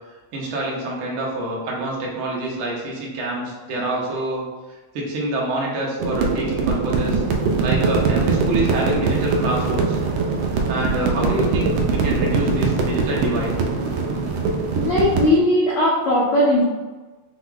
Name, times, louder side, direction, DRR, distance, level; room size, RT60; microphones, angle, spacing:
voice 1, 0.3-4.4 4.9-7.2 7.6-10.0 10.7-13.5, right 1 dB, 65° right, -3 dB, 1.4 m, -26 dB
sound 1, 6.0-15.3, right 4 dB, 80° right, 1.5 m, -22 dB
voice 2, 14.8-16.6, left 1 dB, 75° left, -6 dB, 1.3 m, -18 dB
5.8 x 2.2 x 3.8 m, 1.2 s
omnidirectional pair, 3.4 m